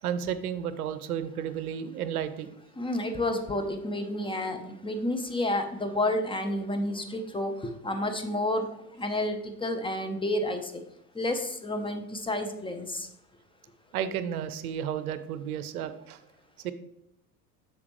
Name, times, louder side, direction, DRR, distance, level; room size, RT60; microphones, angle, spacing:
voice 1, 0.0-2.6 13.9-16.2 16.6-16.7, right 9 dB, 70° right, 12 dB, 0.7 m, -32 dB
voice 2, 2.8-8.7 9.0-10.8 11.1-13.1, left 1 dB, 10° left, 7 dB, 0.9 m, -30 dB
8.4 x 6.6 x 3.2 m, 0.82 s
figure-of-eight pair, 70°, 45 cm